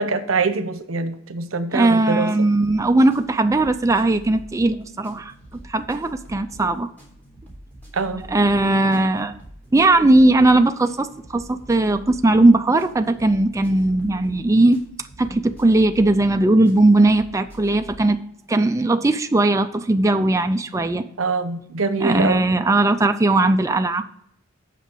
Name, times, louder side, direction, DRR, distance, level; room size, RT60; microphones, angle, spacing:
voice 1, 0.0-2.5 7.9-8.3 21.2-22.4, right 4 dB, 85° right, 11 dB, 0.9 m, -24 dB
voice 2, 1.7-6.9 8.3-9.3 9.7-14.8 15.2-18.2 18.5-21.0 22.0-24.0, right 2 dB, 15° right, 7 dB, 0.4 m, -18 dB
sound 1, 2.6-18.1, equal, 10° left, 3.4 m, -44 dB
8.3 x 5.9 x 6.1 m, 0.70 s
head